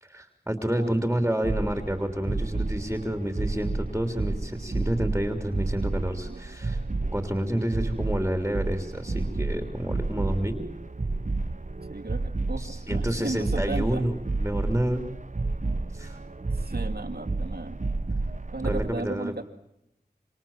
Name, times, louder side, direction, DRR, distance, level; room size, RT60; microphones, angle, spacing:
voice 1, 0.0-6.8 7.1-10.6 12.6-15.0 15.9-16.2 18.6-19.3, equal, 10° right, 6 dB, 3.4 m, -29 dB
sound 1, 1.4-18.9, right 3 dB, 45° right, 1.0 m, -31 dB
voice 2, 11.9-14.0 16.5-17.8 18.5-19.4, right 2 dB, 70° right, 4 dB, 2.3 m, -35 dB
28.0 x 27.0 x 7.4 m, 0.83 s
wide cardioid pair, 40°, 17 cm